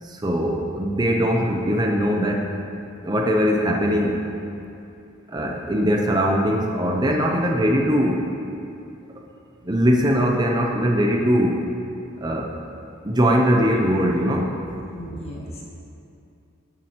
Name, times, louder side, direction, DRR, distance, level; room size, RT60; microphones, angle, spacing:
voice 1, 0.0-2.5 3.0-4.2 5.3-8.3 9.6-11.6 12.2-12.5 13.0-14.5, equal, 20° right, 1 dB, 0.6 m, -21 dB
voice 2, 14.9-15.6, equal, 30° left, -4 dB, 1.3 m, -35 dB
12.5 x 7.4 x 3.0 m, 2.7 s
head